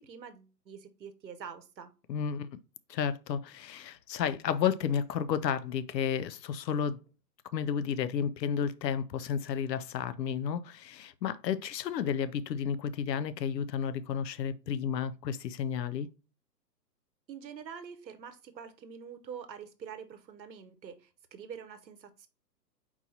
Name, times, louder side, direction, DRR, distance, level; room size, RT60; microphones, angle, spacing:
voice 1, 0.0-1.9 17.3-22.3, right 7 dB, 90° right, 0.9 m, -46 dB
voice 2, 2.1-2.5 2.9-7.0 7.5-16.1, left 8 dB, 80° left, 0.6 m, -32 dB
4.4 x 2.8 x 4.1 m
hypercardioid pair, 125°, 50 cm